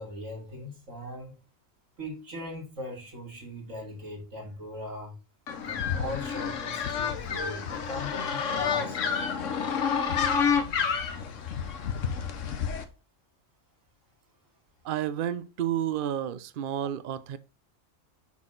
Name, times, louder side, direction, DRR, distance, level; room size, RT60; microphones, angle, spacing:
voice 1, 0.0-1.4 2.0-5.1 5.6-9.1, left 1 dB, 80° right, 3.3 m, -39 dB
sound 1, 5.5-12.8, left 6 dB, 75° left, 1.3 m, -29 dB
voice 2, 14.8-17.4, right 10 dB, 50° right, 0.7 m, -31 dB
7.2 x 6.2 x 3.8 m
omnidirectional pair, 1.3 m